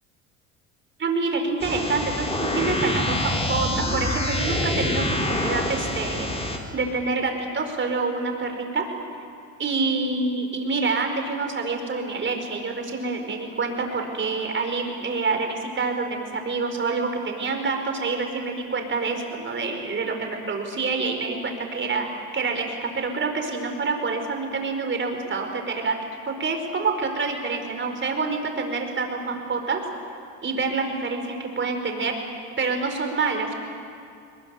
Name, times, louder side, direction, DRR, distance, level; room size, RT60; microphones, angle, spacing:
voice 1, 1.0-8.8 9.6-22.1 22.3-25.9 26.2-29.8 30.4-32.1 32.6-33.5, right 4 dB, 30° right, 4 dB, 5.0 m, -27 dB
sound 1, 1.6-6.6, left 1 dB, 15° left, 4.0 m, -26 dB
22.0 x 21.5 x 9.5 m, 2.5 s
supercardioid pair, 90°, 39 cm